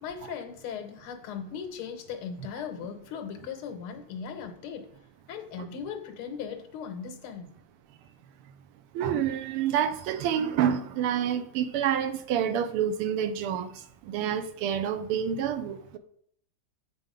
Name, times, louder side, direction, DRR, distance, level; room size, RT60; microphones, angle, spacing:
voice 1, 0.0-4.9 5.3-7.5, left 7 dB, 85° left, 7 dB, 1.8 m, -38 dB
voice 2, 8.9-13.7 14.1-16.0, right 9 dB, 90° right, 9 dB, 1.6 m, -28 dB
7.9 x 4.2 x 5.1 m, 0.66 s
omnidirectional pair, 2.3 m